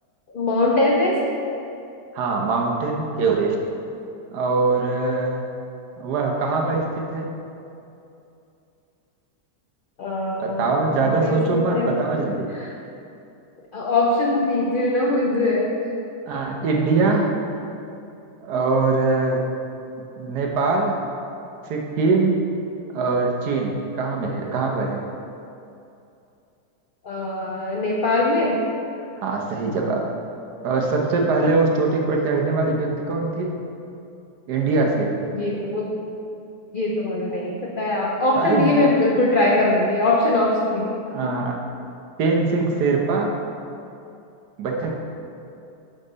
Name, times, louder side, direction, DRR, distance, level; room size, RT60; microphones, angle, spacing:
voice 1, 0.3-1.2 10.0-12.0 12.5-12.7 13.7-15.7 27.0-28.6 35.3-36.0 36.7-41.4, left 2 dB, 85° left, -2 dB, 0.4 m, -22 dB
voice 2, 2.1-3.6 4.3-5.4 6.0-7.3 10.4-12.5 16.3-17.3 18.4-19.4 20.2-21.0 21.7-22.4 22.9-25.0 29.2-30.1 30.6-33.5 34.5-35.1 38.4-38.7 41.1-41.6 42.2-43.3 44.6-44.9, right 3 dB, 80° right, 1 dB, 1.4 m, -22 dB
6.3 x 5.5 x 3.9 m, 2.7 s
omnidirectional pair, 1.7 m